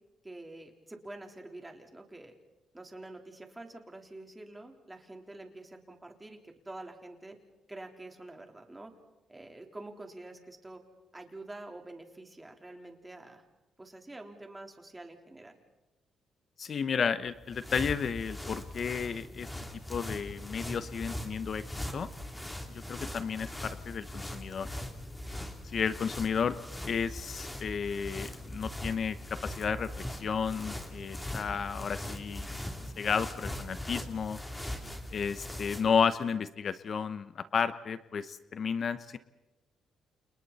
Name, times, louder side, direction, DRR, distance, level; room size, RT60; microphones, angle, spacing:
voice 1, 0.2-2.3 2.7-7.4 7.7-8.9 9.3-10.8 11.1-13.4 13.8-15.6, right 2 dB, 15° right, 3 dB, 3.8 m, -47 dB
voice 2, 16.6-19.5 19.9-21.6 21.9-22.1 22.7-24.7 25.6-26.5 26.9-32.5 33.0-34.4 35.1-39.2, left 6 dB, 50° left, 13 dB, 0.9 m, -32 dB
sound 1, 17.3-36.0, left 1 dB, 10° left, 3.2 m, -41 dB
30.0 x 29.0 x 4.2 m, 1.0 s
cardioid pair, 90°, 0 cm